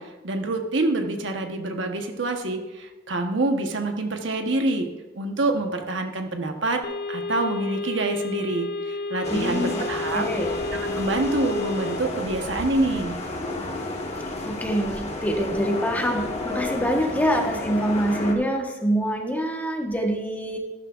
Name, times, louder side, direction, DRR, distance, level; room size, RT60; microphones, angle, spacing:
voice 1, 0.0-4.9 5.1-6.8 7.1-10.2 10.7-13.2, right 2 dB, 80° right, 4 dB, 1.2 m, -26 dB
sound 1, 6.8-12.0, left 3 dB, 55° left, 0.7 m, -31 dB
sound 2, 9.2-18.3, left 2 dB, 35° left, 1.4 m, -32 dB
voice 2, 9.3-9.8 10.1-10.5 14.4-20.6, equal, 10° left, 2 dB, 1.2 m, -25 dB
13.0 x 12.0 x 2.5 m, 1.1 s
head